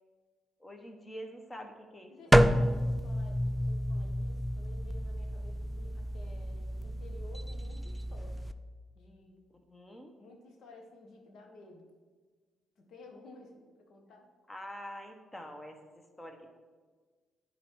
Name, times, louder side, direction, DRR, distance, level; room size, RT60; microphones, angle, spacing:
voice 1, 0.6-2.4 9.7-10.1 14.5-16.6, equal, 15° left, 4 dB, 1.1 m, -46 dB
voice 2, 2.1-8.5 8.9-9.4 10.2-11.9 12.8-14.3, left 2 dB, 70° left, 3 dB, 1.3 m, -54 dB
sound 1, 2.3-8.5, equal, 5° right, 0.3 m, -29 dB
9.9 x 4.2 x 4.7 m, 1.4 s
cardioid pair, 90°, 0 cm